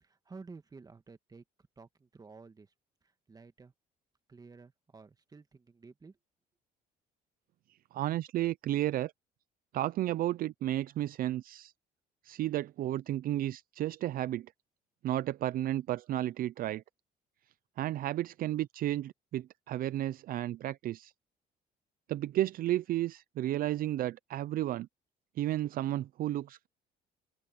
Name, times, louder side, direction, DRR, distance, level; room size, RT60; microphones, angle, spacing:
voice 1, 0.0-1.4 1.8-2.7 3.3-3.7 4.3-6.2, right 4 dB, 20° right, 1.6 m, -52 dB
voice 2, 7.9-9.1 9.7-11.7 12.2-14.5 15.0-16.8 17.8-21.1 22.1-24.9 25.4-26.7, right 13 dB, 60° right, 0.5 m, -32 dB
open air
cardioid pair, 110°, 17 cm